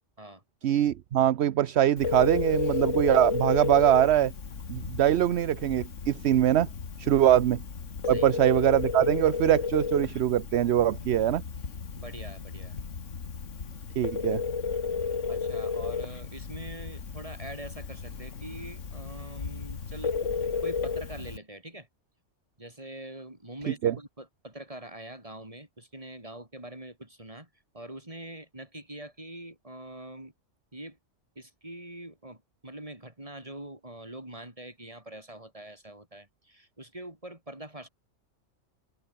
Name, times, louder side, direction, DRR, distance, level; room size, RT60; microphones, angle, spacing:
voice 1, 0.6-4.3 4.7-6.7 7.0-7.6 8.1-11.4 14.0-14.4 23.8-23.9, right 11 dB, 65° right, 0.9 m, -23 dB
Telephone, 2.0-21.4, left 5 dB, 75° left, 2.2 m, -33 dB
voice 2, 11.9-12.8 15.3-20.1 20.6-21.9 22.6-27.5 27.7-30.3 30.7-31.0 31.3-37.9, right 1 dB, 25° right, 5.1 m, -44 dB
omnidirectional pair, 1.3 m